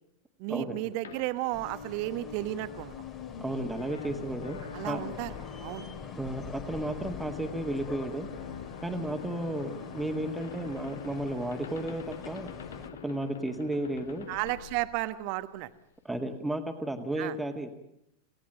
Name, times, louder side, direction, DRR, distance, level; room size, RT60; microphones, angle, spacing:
voice 1, 0.4-3.0 4.7-5.3 5.6-5.9 14.3-15.7 17.2-17.4, right 16 dB, 45° right, 13 dB, 1.2 m, -33 dB
sound 1, 1.0-15.6, left 7 dB, 65° left, 1.6 m, -44 dB
sound 2, 1.5-12.9, left 6 dB, 30° left, 2.3 m, -45 dB
voice 2, 3.4-5.0 6.2-8.3 8.8-12.5 13.0-14.3 16.0-17.7, right 1 dB, 5° right, 5 dB, 2.0 m, -33 dB
26.5 x 17.5 x 9.1 m, 0.84 s
figure-of-eight pair, 90°, 0 cm